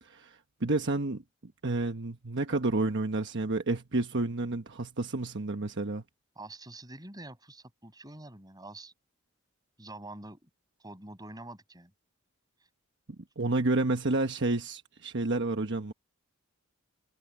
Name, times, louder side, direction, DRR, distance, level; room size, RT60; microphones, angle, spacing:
voice 1, 0.0-6.0 13.4-15.9, right 2 dB, 55° right, 1.1 m, -30 dB
voice 2, 6.3-8.9 9.8-10.5 10.8-11.9, right 2 dB, 20° right, 6.8 m, -46 dB
head